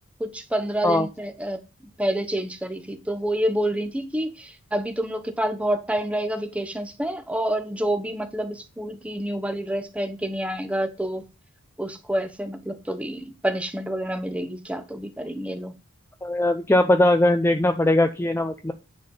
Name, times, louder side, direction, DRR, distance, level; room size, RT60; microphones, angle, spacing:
voice 1, 0.2-1.6 2.0-11.2 11.8-15.7, right 1 dB, 5° right, 0.9 m, -28 dB
voice 2, 16.2-18.7, left 1 dB, 10° left, 0.5 m, -20 dB
9.5 x 4.3 x 5.4 m
head